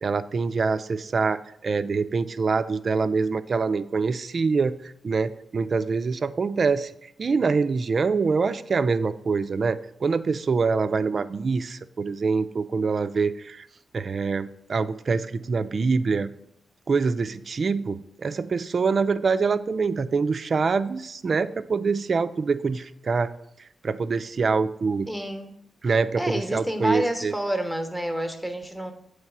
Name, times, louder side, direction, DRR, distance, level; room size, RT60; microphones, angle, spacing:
voice 1, 0.0-4.7 5.0-6.9 7.2-13.7 13.9-16.3 16.9-23.3 23.8-25.1 25.8-27.3, right 4 dB, 50° right, 12 dB, 0.4 m, -25 dB
voice 2, 25.1-25.5 26.2-28.9, equal, 5° left, 5 dB, 0.9 m, -28 dB
8.0 x 3.2 x 6.0 m, 0.75 s
cardioid pair, 75°, 0 cm